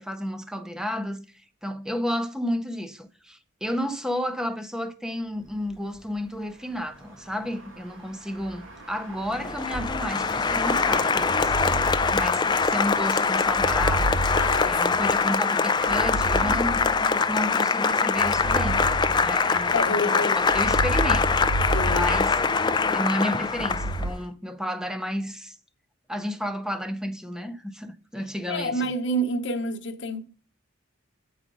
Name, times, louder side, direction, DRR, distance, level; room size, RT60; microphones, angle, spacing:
voice 1, 0.0-11.5 12.1-14.2 14.6-22.4 22.9-25.6 26.1-28.9, equal, 5° right, 0.7 m, -32 dB
sound 1, 5.2-15.9, right 1 dB, 85° right, 2.5 m, -44 dB
Applause, 9.3-24.1, left 5 dB, 20° left, 0.3 m, -23 dB
sound 2, 9.7-10.4 11.2-12.9 13.5-15.3 15.8-17.4 18.2-19.8 20.4-22.9 23.5-24.1, right 1 dB, 55° right, 0.5 m, -31 dB
voice 2, 14.3-14.8 19.7-20.4 21.7-22.1 28.5-30.2, equal, 60° left, 1.0 m, -28 dB
8.8 x 4.9 x 5.4 m
head